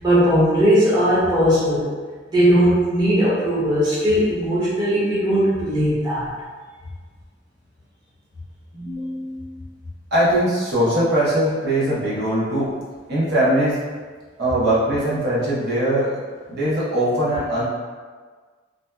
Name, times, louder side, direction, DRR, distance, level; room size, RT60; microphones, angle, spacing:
voice 1, 0.0-1.9 2.3-6.3, equal, 25° right, -10 dB, 0.7 m, -18 dB
voice 2, 8.7-9.6 10.1-12.7 13.1-13.8 14.4-16.2 16.5-17.6, right 1 dB, 60° right, -9 dB, 0.8 m, -21 dB
2.6 x 2.2 x 2.2 m, 1.5 s
head